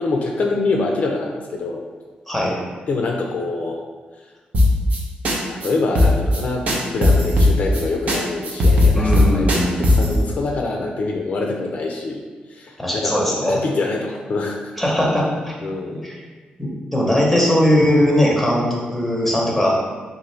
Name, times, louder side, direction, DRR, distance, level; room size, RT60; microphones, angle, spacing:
voice 1, 0.0-1.8 2.9-3.8 5.5-12.2 12.5-14.7 15.6-16.0 17.3-17.4, left 3 dB, 55° left, 1 dB, 0.4 m, -25 dB
voice 2, 2.3-2.6 8.9-10.2 12.8-13.6 14.8-15.5 16.0-16.2 16.6-19.8, left 1 dB, ahead, -2 dB, 0.8 m, -19 dB
sound 1, 4.5-5.0 5.2-5.4 5.6-5.7 6.0-6.4 6.7-7.8 8.1-8.2 8.4-10.1, left 1 dB, 55° right, 0.7 m, -15 dB
3.8 x 2.5 x 3.2 m, 1.4 s
cardioid pair, 110°, 3 cm